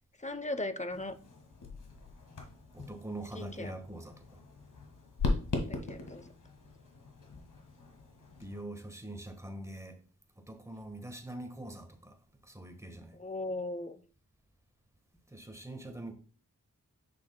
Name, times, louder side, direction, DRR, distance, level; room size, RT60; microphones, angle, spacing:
voice 1, 0.2-1.1 3.3-3.7 5.7-6.2 13.2-14.0, left 2 dB, 20° left, 0.7 m, -37 dB
sound 1, 0.9-8.6, left 3 dB, 65° left, 1.8 m, -39 dB
voice 2, 2.7-4.4 8.4-10.0 10.4-12.2 12.4-13.2 15.3-16.1, right 1 dB, 10° right, 1.3 m, -44 dB
8.6 x 6.2 x 2.2 m
cardioid pair, 60°, 33 cm